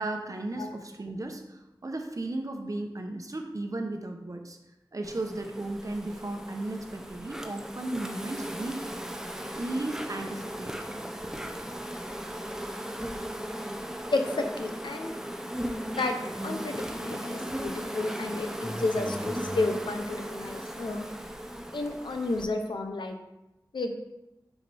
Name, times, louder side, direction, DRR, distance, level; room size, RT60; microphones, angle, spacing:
voice 1, 0.0-4.6 4.9-8.9 9.5-10.7 11.2-11.3, right 2 dB, 45° right, 4 dB, 0.9 m, -35 dB
Insect, 5.0-22.4, equal, 5° right, 0.6 m, -37 dB
voice 2, 14.1-15.1 16.0-16.2 16.4-21.0 21.7-23.2 23.7-23.9, left 2 dB, 90° left, 5 dB, 0.8 m, -31 dB
6.6 x 5.8 x 3.4 m, 0.94 s
wide cardioid pair, 60°, 8 cm